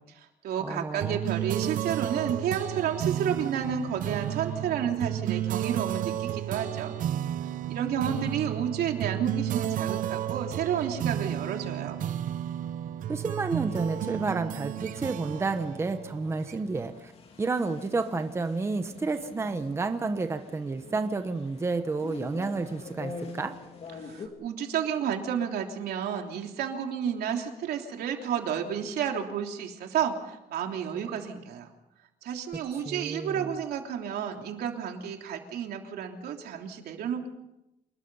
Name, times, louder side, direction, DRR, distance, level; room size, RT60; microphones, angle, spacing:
voice 1, 0.0-7.0 7.7-12.0 24.0-31.7 32.2-37.3, right 8 dB, 90° right, 3 dB, 3.3 m, -31 dB
voice 2, 0.6-1.2 13.1-17.1 17.4-23.5 32.9-33.5, right 3 dB, 15° right, 8 dB, 1.0 m, -30 dB
sound 1, 1.0-16.9, right 11 dB, 60° right, 0.8 m, -32 dB
sound 2, 13.7-24.3, left 4 dB, 40° left, 3.1 m, -46 dB
27.0 x 21.0 x 5.6 m, 0.91 s
cardioid pair, 180°, 16 cm